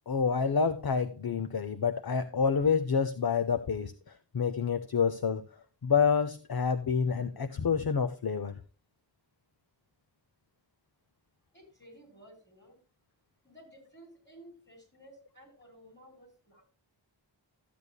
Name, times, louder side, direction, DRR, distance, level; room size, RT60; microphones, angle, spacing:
voice 1, 0.1-5.4 5.8-8.5, left 6 dB, 55° left, 11 dB, 0.7 m, -28 dB
voice 2, 11.5-12.7 13.4-16.7, right 1 dB, 25° left, 2 dB, 4.9 m, -55 dB
14.0 x 8.3 x 2.3 m, 0.38 s
wide cardioid pair, 45°, 45 cm